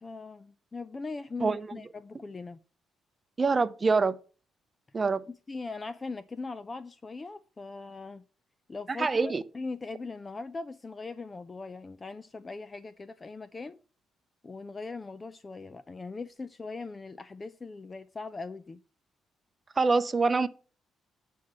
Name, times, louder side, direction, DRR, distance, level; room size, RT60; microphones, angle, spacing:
voice 1, 0.0-2.6 5.5-8.2 8.7-13.8 14.4-18.8, left 3 dB, 30° left, 0.5 m, -40 dB
voice 2, 1.4-1.8 3.4-4.2 4.9-5.2 8.9-9.4 19.8-20.5, right 4 dB, 30° right, 0.7 m, -25 dB
9.2 x 4.6 x 7.4 m
cardioid pair, 90°, 0 cm